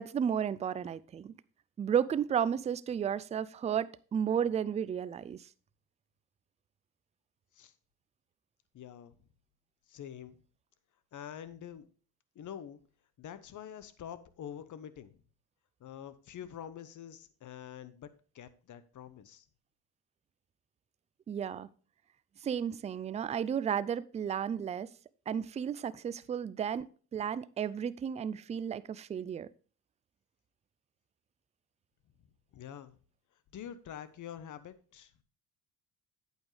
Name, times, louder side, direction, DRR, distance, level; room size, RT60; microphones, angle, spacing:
voice 1, 0.0-1.3 1.8-5.4 21.3-21.7 22.4-24.9 25.3-26.8 27.1-29.5, right 8 dB, 20° right, 0.3 m, -33 dB
voice 2, 8.7-9.1 9.9-10.3 11.1-11.9 12.4-12.8 13.2-15.1 15.8-18.1 18.3-19.4 32.5-32.9 33.5-35.1, left 9 dB, 45° left, 1.0 m, -46 dB
8.7 x 8.3 x 3.3 m
supercardioid pair, 80°, 42 cm